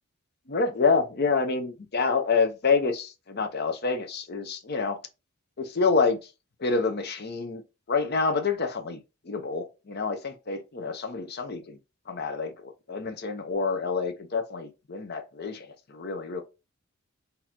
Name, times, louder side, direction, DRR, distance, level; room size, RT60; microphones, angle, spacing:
voice 1, 0.5-5.0 5.6-6.2 6.6-7.6 7.9-9.0 9.3-11.8 12.1-16.4, left 4 dB, 50° left, 0.7 m, -27 dB
4.1 x 2.7 x 2.8 m
head